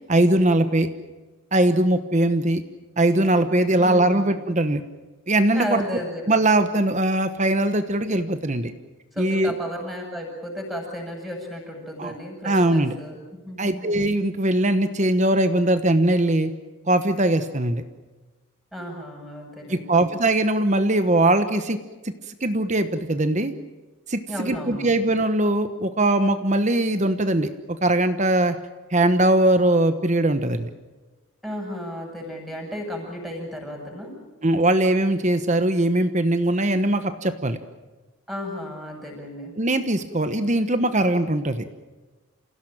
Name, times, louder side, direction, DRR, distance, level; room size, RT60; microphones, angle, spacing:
voice 1, 0.1-0.9 1.5-2.6 3.0-4.8 5.3-5.8 6.3-8.7 9.2-9.5 12.0-12.1 12.4-12.9 13.6-16.5 16.9-17.8 19.7-21.8 22.0-23.5 24.1-27.5 27.8-28.5 28.9-30.7 34.4-37.6 39.6-41.7, right 1 dB, 35° right, 9 dB, 1.1 m, -21 dB
voice 2, 3.6-4.4 5.5-6.5 9.1-13.9 18.7-20.0 24.3-25.0 31.4-34.1 38.3-39.5, equal, ahead, 0 dB, 7.3 m, -34 dB
28.0 x 16.5 x 9.0 m, 1.2 s
head